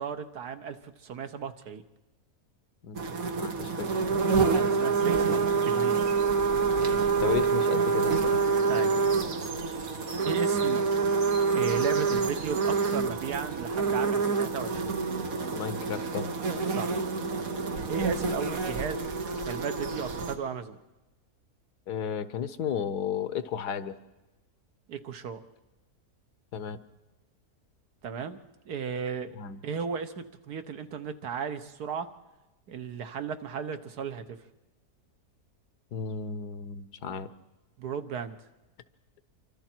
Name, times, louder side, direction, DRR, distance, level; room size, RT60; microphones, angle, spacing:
voice 1, 0.0-1.8 4.5-6.2 8.7-9.0 10.3-10.8 11.5-14.9 16.7-17.0 17.9-19.0 19.3-20.8 24.9-25.4 28.0-28.4 28.7-29.4 29.6-32.1 32.7-34.4 37.8-38.4, right 6 dB, 80° right, 8 dB, 1.7 m, -35 dB
sound 1, 2.9-20.4, right 5 dB, 60° right, 1.9 m, -27 dB
voice 2, 3.4-4.0 6.8-8.5 15.5-16.3 21.9-24.0 26.5-26.8 29.4-29.6 35.9-37.3, left 8 dB, 85° left, 13 dB, 1.6 m, -33 dB
28.0 x 24.5 x 4.5 m, 1.1 s
omnidirectional pair, 1.7 m